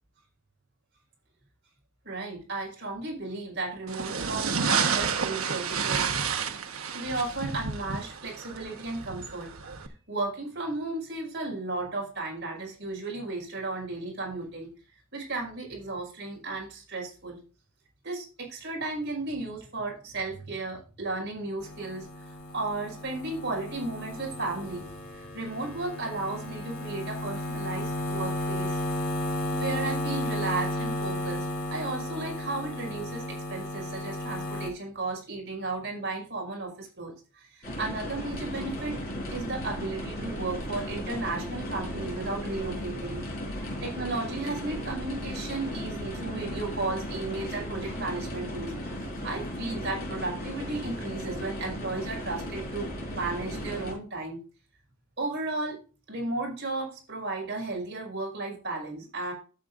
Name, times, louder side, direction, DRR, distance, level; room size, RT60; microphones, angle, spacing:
voice 1, 2.0-6.2 6.9-9.5 10.1-14.7 15.1-17.4 18.0-28.8 29.5-39.0 39.3-48.9 49.2-54.4 55.2-59.3, right 2 dB, 55° right, -1 dB, 5.5 m, -34 dB
sound 1, 3.9-9.9, right 6 dB, 80° right, 1.1 m, -30 dB
sound 2, 21.6-34.7, left 1 dB, 75° left, 3.6 m, -34 dB
sound 3, 37.6-53.9, equal, 45° left, 5.0 m, -36 dB
12.0 x 8.6 x 2.6 m, 0.37 s
head